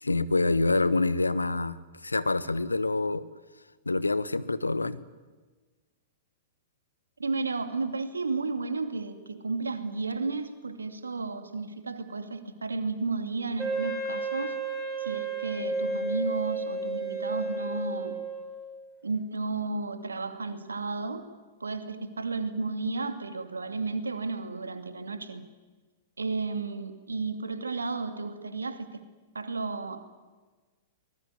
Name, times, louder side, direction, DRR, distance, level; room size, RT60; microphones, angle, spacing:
voice 1, 0.0-3.2 3.9-5.0, left 3 dB, 85° left, 16 dB, 1.1 m, -26 dB
voice 2, 7.2-14.6 15.0-18.2 19.0-21.2 21.6-25.4 26.2-29.0 29.3-30.0, right 3 dB, 75° right, 9 dB, 2.5 m, -33 dB
Wind instrument woodwind instrument, 13.6-18.7, right 3 dB, 5° right, 6.4 m, -32 dB
23.5 x 21.0 x 9.6 m, 1.3 s
figure-of-eight pair, 105°, 0 cm